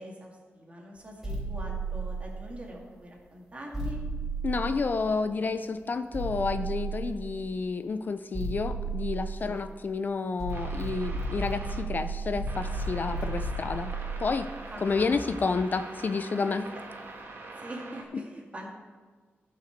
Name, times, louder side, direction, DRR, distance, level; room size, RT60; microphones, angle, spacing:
voice 1, 0.0-4.0 4.5-4.9 9.4-9.6 14.7-15.1 17.6-18.7, equal, 30° right, -1 dB, 2.1 m, -43 dB
sound 1, 1.2-2.7 3.7-5.3 6.1-7.5 8.3-9.9 10.4-15.7, right 3 dB, 10° right, 3.4 m, -34 dB
voice 2, 4.4-13.9 14.2-14.5 14.8-16.7, left 4 dB, 45° left, 10 dB, 0.4 m, -30 dB
sound 2, 10.5-11.8 12.5-18.0, right 3 dB, 60° right, 1.3 m, -44 dB
15.0 x 5.8 x 4.6 m, 1.4 s
wide cardioid pair, 130°, 4 cm